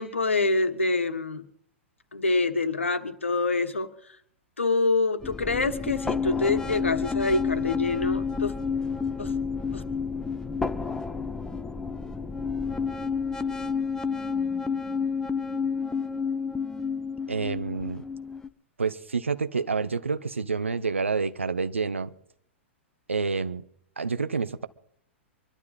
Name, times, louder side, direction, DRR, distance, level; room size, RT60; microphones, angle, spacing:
voice 1, 0.0-1.5 2.1-3.9 4.6-8.5 9.2-9.3 9.7-9.8, left 3 dB, 75° left, 10 dB, 1.3 m, -26 dB
sound 1, 5.2-18.5, left 5 dB, 10° left, 0.7 m, -30 dB
voice 2, 17.3-18.0 18.8-22.1 23.1-23.6 24.0-24.7, right 4 dB, 75° right, 12 dB, 1.0 m, -28 dB
24.5 x 12.0 x 4.0 m, 0.67 s
figure-of-eight pair, 105°, 7 cm